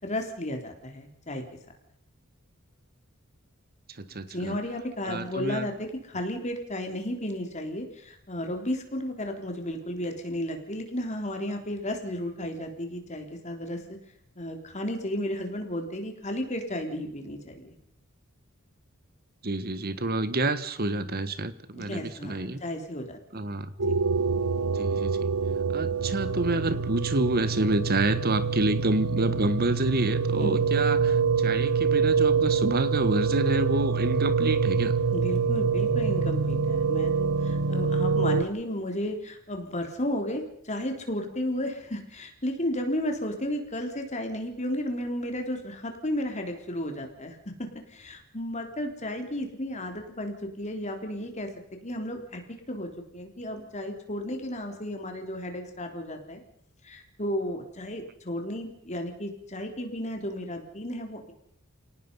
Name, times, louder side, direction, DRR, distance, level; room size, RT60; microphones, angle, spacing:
voice 1, 0.0-1.4 4.1-13.8 14.4-17.7 21.8-23.5 23.9-24.0 30.4-30.6 35.1-56.4 56.8-61.3, left 1 dB, 30° left, 4 dB, 3.7 m, -33 dB
voice 2, 4.0-4.6 5.1-5.7 19.4-22.6 23.3-23.7 24.7-25.3 25.7-34.9, right 2 dB, 45° right, 13 dB, 1.5 m, -28 dB
sound 1, 23.8-38.4, right 5 dB, 80° right, 1.0 m, -25 dB
29.0 x 18.0 x 5.5 m, 0.74 s
head